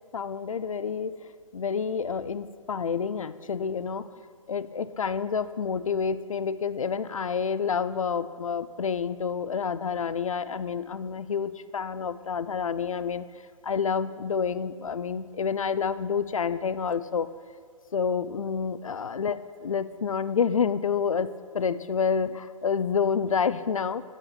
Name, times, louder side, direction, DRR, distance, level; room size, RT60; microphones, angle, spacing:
voice 1, 0.1-4.1 4.5-13.3 13.6-17.3 17.9-24.0, left 6 dB, 65° left, 14 dB, 0.4 m, -28 dB
8.0 x 7.0 x 5.8 m, 2.1 s
figure-of-eight pair, 135°, 18 cm